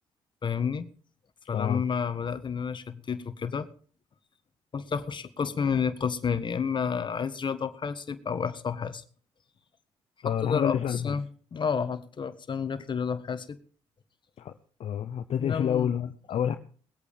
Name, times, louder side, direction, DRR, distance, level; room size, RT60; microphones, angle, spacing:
voice 1, 0.4-0.9 1.5-3.7 4.7-9.0 10.2-11.2 11.5-13.6 15.4-15.9, left 6 dB, 45° left, 11 dB, 1.5 m, -30 dB
voice 2, 1.5-1.8 10.2-11.2 14.4-14.5 14.8-16.6, left 9 dB, 65° left, 9 dB, 0.8 m, -28 dB
20.0 x 8.4 x 5.2 m, 0.43 s
supercardioid pair, 60°, 11 cm